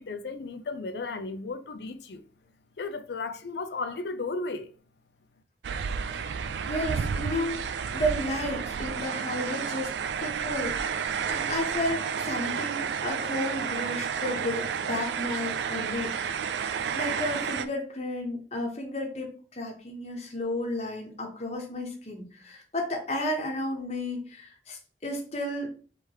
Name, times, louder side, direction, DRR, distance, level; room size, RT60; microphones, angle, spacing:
voice 1, 0.0-2.2 2.8-4.7, left 3 dB, 70° left, 0.5 m, -34 dB
sound 1, 5.6-17.7, right 7 dB, 80° right, 0.4 m, -31 dB
voice 2, 6.1-10.8 11.3-16.1 16.6-25.7, left 1 dB, 35° left, 1.0 m, -33 dB
3.4 x 3.1 x 4.6 m
head